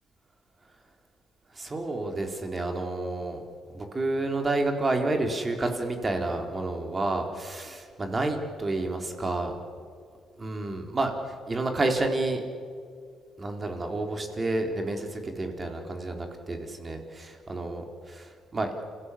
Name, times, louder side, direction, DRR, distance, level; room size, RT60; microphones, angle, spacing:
voice 1, 1.5-3.4 3.7-9.6 10.4-12.4 13.4-18.8, right 2 dB, 25° right, 4 dB, 3.8 m, -30 dB
29.0 x 16.5 x 8.4 m, 2.2 s
cardioid pair, 100°, 0 cm